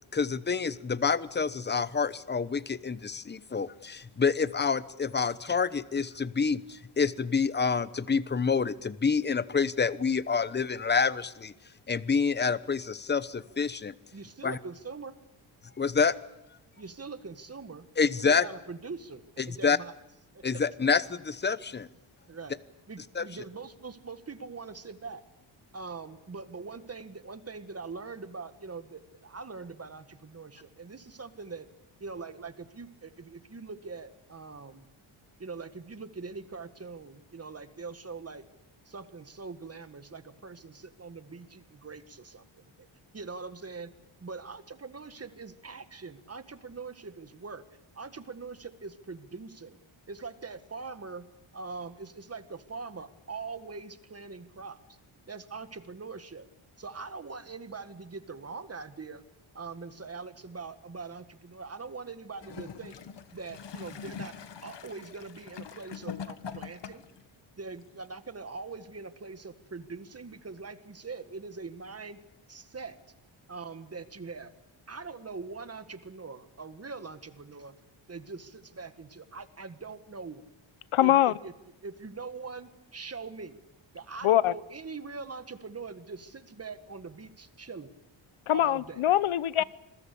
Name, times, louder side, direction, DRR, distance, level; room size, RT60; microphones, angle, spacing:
voice 1, 0.1-11.5 11.9-13.9 14.4-14.6 15.8-16.2 18.0-18.5 19.4-19.8 20.4-21.9 23.1-23.3, left 5 dB, 20° left, 16 dB, 0.9 m, -27 dB
voice 2, 14.1-15.2 16.8-17.9 18.2-19.9 20.3-20.4 22.3-22.6 22.9-25.2 25.7-31.7 32.0-34.9 35.4-38.5 38.9-42.9 43.1-43.9 44.2-47.6 48.0-49.8 50.1-51.3 51.5-54.8 55.3-56.5 56.8-59.2 59.5-63.0 63.3-64.4 64.6-67.0 67.6-72.2 72.5-73.0 73.5-74.5 74.9-77.8 78.1-80.5 81.0-81.5 81.8-83.6 83.9-88.0 88.5-89.1, right 4 dB, 30° right, 11 dB, 1.8 m, -42 dB
Gurgling / Toilet flush, 62.3-67.2 68.0-68.1, left 7 dB, 60° left, 1.6 m, -43 dB
voice 3, 80.9-81.3 84.2-84.5 88.5-89.6, left 13 dB, 75° left, 19 dB, 0.9 m, -23 dB
27.0 x 21.5 x 8.5 m, 0.89 s
cardioid pair, 115°, 49 cm